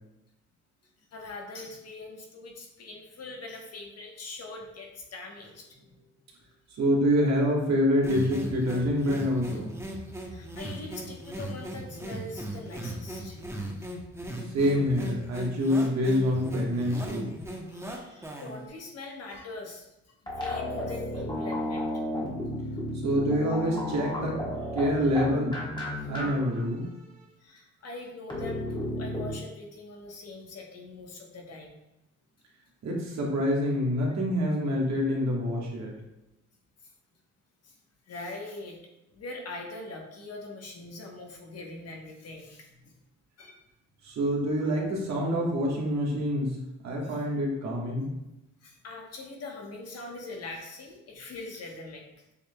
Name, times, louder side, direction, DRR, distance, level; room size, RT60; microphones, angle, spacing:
voice 1, 1.1-5.7 10.3-13.4 17.7-19.9 20.2-21.9 26.0-26.1 27.4-31.8 36.8-36.9 37.6-37.8 38.1-38.8 39.1-42.9 43.4-43.6 47.0-47.2 48.6-52.0, left 2 dB, 55° left, 1 dB, 1.1 m, -42 dB
voice 2, 6.8-9.7 14.4-17.3 18.2-18.3 23.0-24.4 24.7-25.6 26.1-27.1 32.8-35.9 44.0-46.6 46.8-48.1, equal, 65° right, -2 dB, 1.4 m, -26 dB
sound 1, 8.0-18.7, right 1 dB, 10° right, 0.8 m, -38 dB
sound 2, 20.3-26.3 26.5-26.6 28.3-29.3, left 1 dB, 15° left, 1.3 m, -33 dB
7.0 x 3.3 x 2.2 m, 0.94 s
cardioid pair, 90°, 30 cm